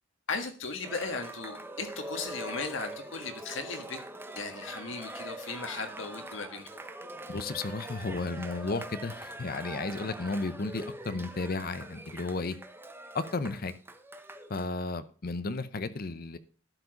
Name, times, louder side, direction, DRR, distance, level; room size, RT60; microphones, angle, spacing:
voice 1, 0.3-4.0 4.3-6.7, left 4 dB, 85° left, 5 dB, 1.6 m, -37 dB
Cheering, 0.8-14.7, right 1 dB, 10° right, 0.8 m, -43 dB
voice 2, 7.3-12.6 13.1-13.7 14.5-16.4, left 3 dB, 50° left, 13 dB, 0.7 m, -33 dB
12.0 x 4.9 x 5.2 m, 0.40 s
head